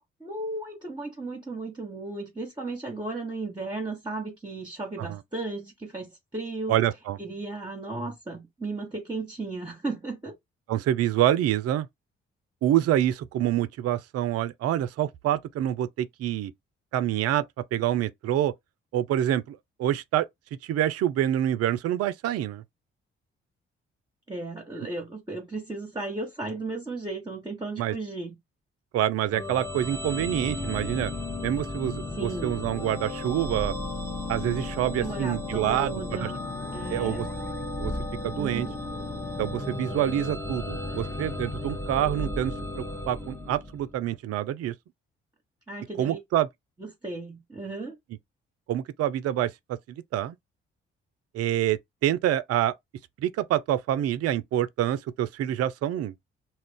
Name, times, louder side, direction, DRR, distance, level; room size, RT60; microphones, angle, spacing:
voice 1, 0.2-6.8 7.2-10.4 24.3-28.4 32.1-32.5 35.0-36.4 36.7-37.3 38.4-38.7 45.7-46.2 46.8-47.9, right 2 dB, 15° right, 1.1 m, -35 dB
voice 2, 6.7-7.2 10.7-11.9 12.6-16.5 16.9-17.4 17.7-18.5 18.9-20.3 20.6-22.6 27.8-27.9 28.9-31.1 31.4-33.7 34.3-36.3 36.9-37.3 37.8-37.9 38.2-38.7 39.4-44.7 46.0-46.5 48.7-49.8 50.1-50.3 51.3-52.7 53.2-56.1, right 12 dB, 50° right, 0.4 m, -26 dB
sound 1, 29.3-44.0, left 2 dB, 10° left, 0.8 m, -34 dB
2.4 x 2.1 x 3.7 m
hypercardioid pair, 40°, 31 cm